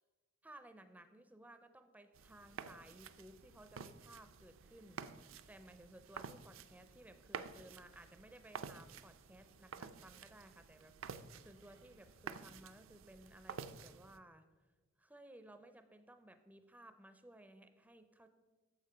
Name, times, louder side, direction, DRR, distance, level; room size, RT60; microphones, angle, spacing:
voice 1, 0.4-14.5 15.0-18.3, right 1 dB, 5° right, 9 dB, 0.4 m, -59 dB
sound 1, 2.1-14.2, right 6 dB, 70° right, 0.5 m, -51 dB
8.9 x 7.1 x 5.5 m, 1.3 s
head